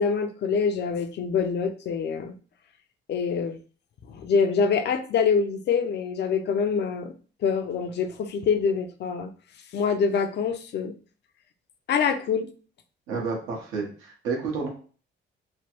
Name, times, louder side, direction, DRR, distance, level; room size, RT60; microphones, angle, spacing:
voice 1, 0.0-2.3 3.1-3.6 4.1-7.1 7.4-9.3 9.7-10.9 11.9-12.5, left 6 dB, 60° left, 8 dB, 0.5 m, -25 dB
voice 2, 13.1-14.7, right 4 dB, 90° right, -1 dB, 1.2 m, -30 dB
3.1 x 2.1 x 3.0 m, 0.40 s
cardioid pair, 90°, 20 cm